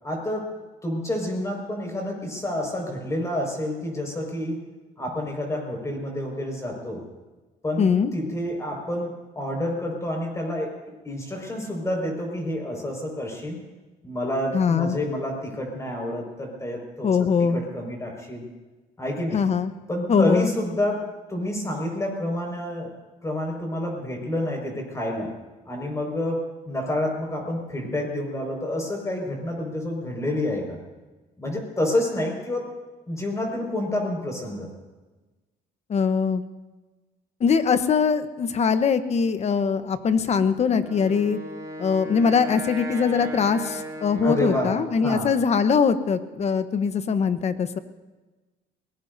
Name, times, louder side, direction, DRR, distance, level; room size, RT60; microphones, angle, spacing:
voice 1, 0.0-0.5 0.8-4.6 5.0-7.0 7.6-10.7 11.0-13.6 14.0-18.5 19.0-19.4 19.9-22.9 23.2-25.3 25.7-30.8 31.4-32.7 33.1-34.7 44.2-44.7 45.0-45.3, left 1 dB, 15° left, 1 dB, 5.4 m, -29 dB
voice 2, 7.8-8.1 14.5-15.0 17.0-17.6 19.3-19.7 20.1-20.5 35.9-36.4 37.4-41.4 41.8-47.8, left 6 dB, 40° left, 11 dB, 1.0 m, -22 dB
Wind instrument woodwind instrument, 40.8-45.0, right 1 dB, 20° right, 3.6 m, -37 dB
22.5 x 19.0 x 2.7 m, 1.2 s
cardioid pair, 110°, 17 cm